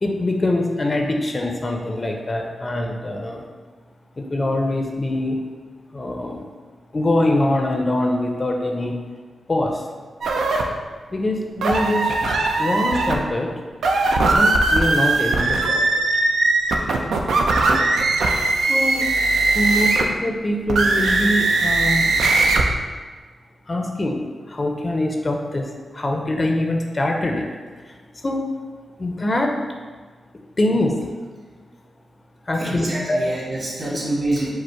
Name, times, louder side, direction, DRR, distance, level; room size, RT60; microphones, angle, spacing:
voice 1, 0.0-3.4 4.2-5.4 5.9-6.5 6.9-8.9 9.5-9.8 11.1-12.2 12.6-13.5 14.3-15.8 17.9-18.1 18.7-19.1 19.5-22.1 23.7-27.5 28.2-28.4 29.0-29.5 30.6-30.9 32.5-33.2, left 1 dB, 35° left, 2 dB, 0.5 m, -23 dB
sound 1, 10.2-10.6 11.6-13.2 13.7-20.1 20.7-22.6, right 2 dB, 90° right, 0.4 m, -19 dB
voice 2, 32.5-34.5, right 1 dB, 50° right, -5 dB, 1.5 m, -26 dB
5.0 x 2.0 x 4.4 m, 1.5 s
cardioid pair, 80°, 0 cm